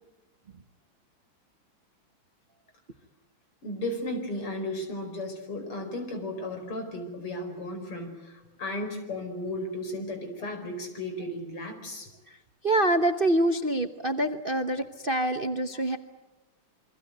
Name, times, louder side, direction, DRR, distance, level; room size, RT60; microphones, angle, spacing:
voice 1, 3.6-12.1 15.7-15.8, left 1 dB, 90° left, 5 dB, 5.8 m, -35 dB
voice 2, 12.6-16.0, right 1 dB, 40° right, 7 dB, 0.8 m, -26 dB
28.5 x 23.5 x 8.0 m, 1.1 s
omnidirectional pair, 2.4 m